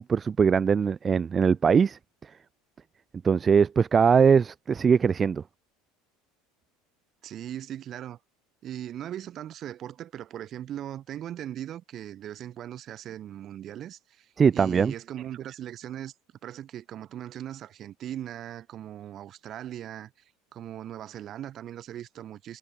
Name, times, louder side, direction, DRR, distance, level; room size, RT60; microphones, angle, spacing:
voice 1, 0.0-2.0 3.2-5.4 14.4-14.9, right 6 dB, 30° right, 0.7 m, -21 dB
voice 2, 7.2-8.2 8.6-16.1 16.4-20.1 20.5-22.6, right 11 dB, 45° right, 2.8 m, -39 dB
hypercardioid pair, 75°, 0 cm